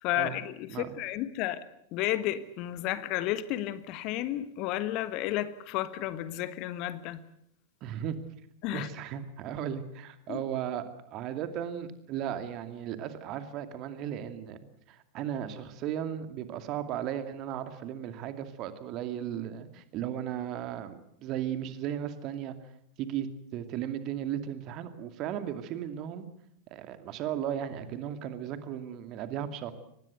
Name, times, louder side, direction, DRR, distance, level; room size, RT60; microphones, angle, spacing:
voice 1, 0.0-1.6 1.9-7.2 8.6-8.9 10.3-10.4, left 14 dB, 40° left, 14 dB, 1.4 m, -32 dB
voice 2, 7.8-8.2 8.7-14.6 14.9-22.6 23.0-26.3 26.7-29.7, right 10 dB, 40° right, 9 dB, 2.4 m, -36 dB
24.5 x 20.0 x 8.0 m, 0.74 s
figure-of-eight pair, 90°, 0 cm